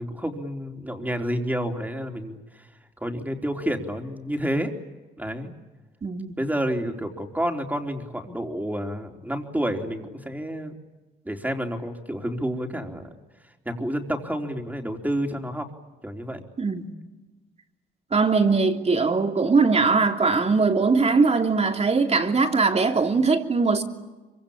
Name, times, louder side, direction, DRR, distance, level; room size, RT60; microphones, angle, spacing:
voice 1, 0.0-2.7 3.0-4.7 5.2-5.5 6.4-10.7 11.2-13.1 13.4-15.7 16.0-16.4, equal, 10° right, 4.0 m, -29 dB
voice 2, 6.0-6.4 16.6-16.9 18.1-23.8, right 4 dB, 30° right, 3.1 m, -21 dB
25.5 x 25.0 x 8.8 m
cardioid pair, 90°, 20 cm